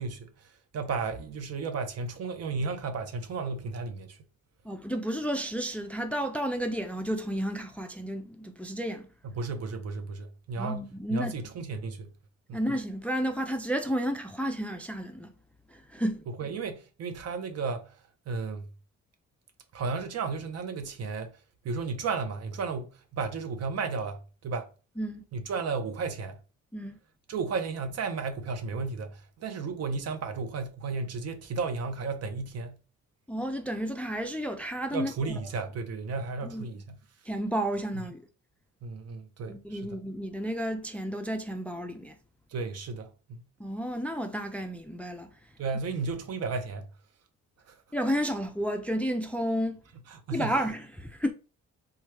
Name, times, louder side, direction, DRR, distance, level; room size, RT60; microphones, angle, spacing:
voice 1, 0.0-4.2 9.2-12.1 12.5-12.6 16.3-18.0 18.3-18.7 19.7-21.4 21.6-24.7 25.3-26.4 27.3-32.8 34.9-37.0 38.8-40.0 42.5-43.5 45.6-46.9 47.7-47.8 50.1-50.6, right 4 dB, 55° right, 0.6 m, -34 dB
voice 2, 4.6-9.1 10.6-11.3 12.5-15.3 15.7-16.2 25.0-25.2 26.7-27.0 33.3-35.1 36.4-36.7 37.3-38.2 39.4-42.1 43.6-45.3 47.9-49.8 50.3-51.3, equal, 5° left, 0.4 m, -31 dB
3.1 x 2.3 x 3.1 m
cardioid pair, 90°, 30 cm